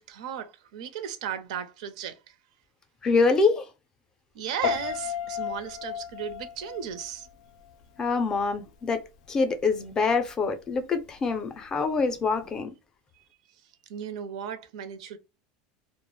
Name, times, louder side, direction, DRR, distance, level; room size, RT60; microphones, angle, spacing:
voice 1, 0.0-2.3 4.3-7.3 13.9-15.2, right 8 dB, 85° right, 0.5 m, -35 dB
voice 2, 3.0-3.7 8.0-9.0 9.3-12.7, left 4 dB, 20° left, 0.4 m, -25 dB
Piano, 4.6-7.7 8.0-8.4, left 9 dB, 80° left, 0.4 m, -33 dB
2.3 x 2.0 x 3.0 m
supercardioid pair, 155°, 3 cm